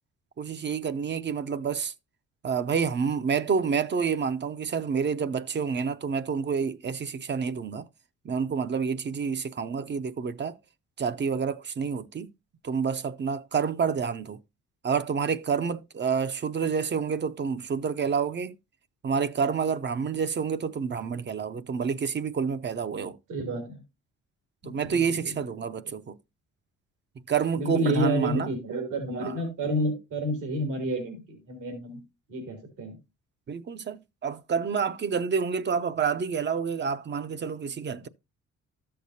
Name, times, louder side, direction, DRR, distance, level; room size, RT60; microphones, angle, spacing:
voice 1, 0.4-1.9 2.4-7.9 8.2-10.6 11.0-12.3 12.6-14.4 14.8-18.5 19.0-23.2 24.6-26.2 27.3-28.5 29.2-29.3 33.5-38.1, right 6 dB, 35° right, 0.6 m, -28 dB
voice 2, 23.3-23.8 24.6-25.3 27.5-32.0 32.3-33.0 37.9-38.1, right 1 dB, 85° right, 3.0 m, -30 dB
13.0 x 6.7 x 2.7 m
cardioid pair, 90°, 30 cm